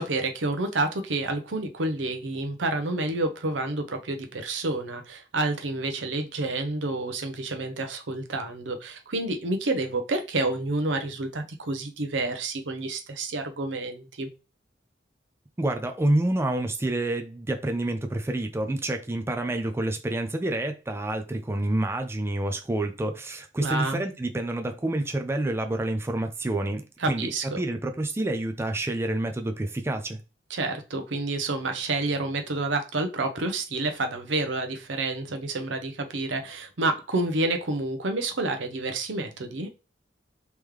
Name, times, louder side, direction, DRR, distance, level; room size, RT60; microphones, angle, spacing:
voice 1, 0.0-14.3 23.6-24.0 27.0-27.6 30.5-39.7, right 2 dB, 90° right, 0.7 m, -29 dB
voice 2, 15.6-26.8 27.1-27.3 27.6-30.2, right 1 dB, 15° right, 0.4 m, -28 dB
3.6 x 3.1 x 3.2 m
head